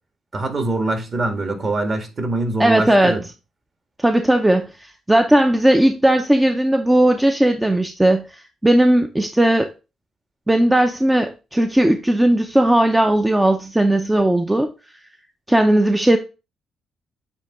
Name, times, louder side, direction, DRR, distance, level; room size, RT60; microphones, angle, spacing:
voice 1, 0.3-3.2, right 2 dB, 40° right, 1.8 m, -23 dB
voice 2, 2.6-3.2 4.0-9.7 10.5-14.7 15.5-16.2, right 1 dB, 10° right, 0.6 m, -17 dB
8.7 x 2.9 x 3.7 m
cardioid pair, 90°, 0 cm